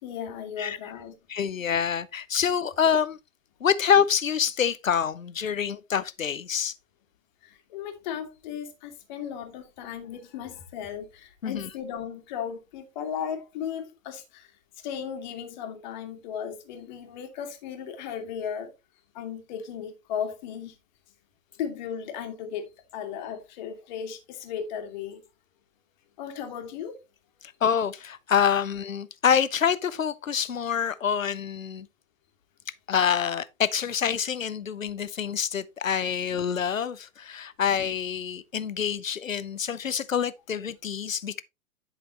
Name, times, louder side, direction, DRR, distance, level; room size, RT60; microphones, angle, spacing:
voice 1, 0.0-1.2 7.4-14.5 14.8-18.7 19.1-20.8 21.5-25.2 26.2-27.0, left 8 dB, 35° left, 2.1 m, -36 dB
voice 2, 1.3-3.2 3.6-6.7 11.4-11.7 27.4-31.9 32.9-41.4, left 7 dB, 70° left, 0.9 m, -26 dB
11.5 x 6.0 x 2.9 m
figure-of-eight pair, 120°, 41 cm